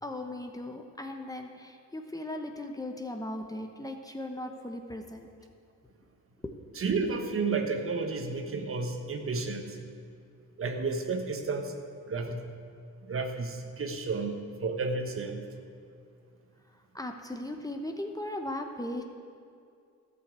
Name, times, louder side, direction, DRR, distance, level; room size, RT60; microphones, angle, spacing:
voice 1, 0.0-5.3 6.4-6.6 16.9-19.0, left 1 dB, 10° left, 4 dB, 0.9 m, -38 dB
voice 2, 6.7-9.8 10.6-11.7 12.1-12.4 13.1-15.4, right 4 dB, 45° right, 5 dB, 1.3 m, -32 dB
13.0 x 5.9 x 8.2 m, 2.4 s
cardioid pair, 90°, 30 cm